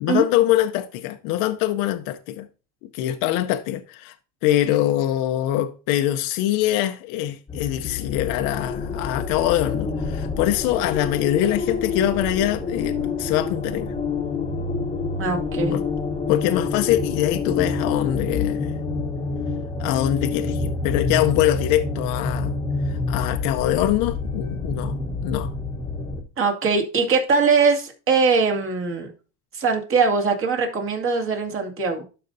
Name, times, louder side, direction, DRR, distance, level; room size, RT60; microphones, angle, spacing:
voice 1, 0.0-2.5 2.9-4.1 4.4-13.9 15.7-15.8 16.3-18.8 19.8-22.6 22.9-25.0 25.2-25.5, left 13 dB, 65° left, 0.7 m, -23 dB
sound 1, 7.5-26.2, left 4 dB, 15° left, 1.1 m, -27 dB
voice 2, 15.2-15.8 26.4-29.1 29.5-32.0, right 4 dB, 35° right, 2.2 m, -21 dB
12.0 x 5.3 x 2.7 m
supercardioid pair, 120°, 36 cm